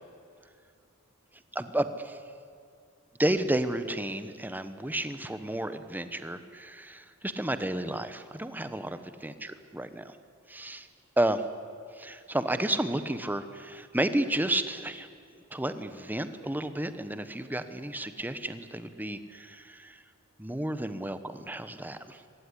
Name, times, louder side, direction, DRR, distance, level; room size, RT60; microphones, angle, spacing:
voice 1, 1.5-2.2 3.2-10.1 10.5-10.9 11.2-11.4 11.9-15.1 15.5-20.0 20.4-22.2, right 1 dB, 10° right, 11 dB, 1.1 m, -32 dB
25.0 x 19.0 x 10.0 m, 2.2 s
head